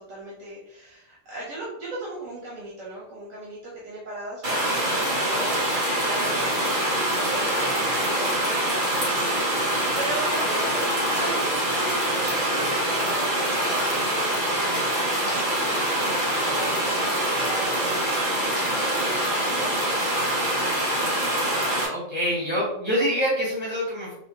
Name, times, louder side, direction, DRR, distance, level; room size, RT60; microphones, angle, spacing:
voice 1, 0.1-20.0, right 1 dB, 80° right, -6 dB, 1.3 m, -38 dB
sound 1, 4.4-21.9, right 1 dB, 40° right, 1.3 m, -24 dB
voice 2, 21.9-24.1, equal, 25° left, -7 dB, 1.2 m, -25 dB
4.2 x 2.7 x 2.8 m, 0.79 s
omnidirectional pair, 1.3 m